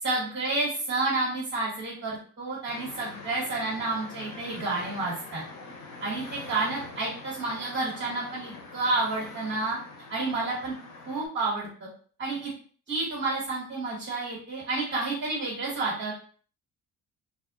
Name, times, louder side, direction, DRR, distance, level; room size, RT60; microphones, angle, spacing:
voice 1, 0.0-5.4 6.0-9.8 10.1-10.7 11.1-11.9 12.2-12.5 12.9-16.1, right 3 dB, 35° right, -5 dB, 1.2 m, -30 dB
sound 1, 2.7-11.3, left 3 dB, 80° left, 0.8 m, -44 dB
2.7 x 2.3 x 3.6 m, 0.43 s
cardioid pair, 175°, 32 cm